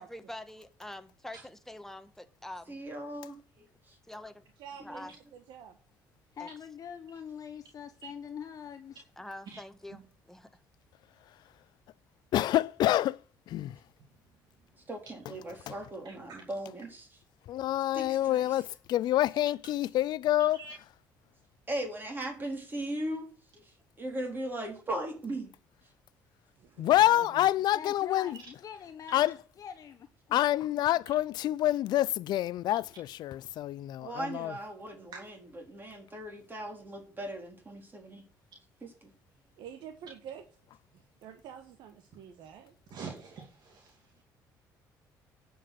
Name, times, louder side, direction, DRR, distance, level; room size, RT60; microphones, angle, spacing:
voice 1, 0.0-2.8 4.1-4.3 4.8-5.1 6.4-6.5 9.2-10.0 10.3-10.5, left 1 dB, 5° left, 1.3 m, -45 dB
voice 2, 2.7-3.7 4.8-5.1 14.9-17.1 17.9-18.6 21.7-23.3 23.5-25.5 34.0-38.2 38.8-39.1, right 1 dB, 25° right, 3.9 m, -38 dB
voice 3, 4.6-5.8 26.6-27.5 39.6-40.4 40.9-42.7, right 8 dB, 75° right, 1.4 m, -48 dB
voice 4, 6.3-9.0 27.7-30.3, left 8 dB, 50° left, 0.9 m, -44 dB
voice 5, 12.3-13.2 13.5-13.7 15.7-15.8 17.5-20.6 26.8-28.4 29.1-29.3 30.3-34.5, left 13 dB, 70° left, 0.5 m, -27 dB
voice 6, 16.0-16.4 20.4-20.7 26.7-26.8 42.9-44.2, right 5 dB, 60° right, 2.5 m, -46 dB
10.0 x 5.5 x 7.9 m
cardioid pair, 90°, 8 cm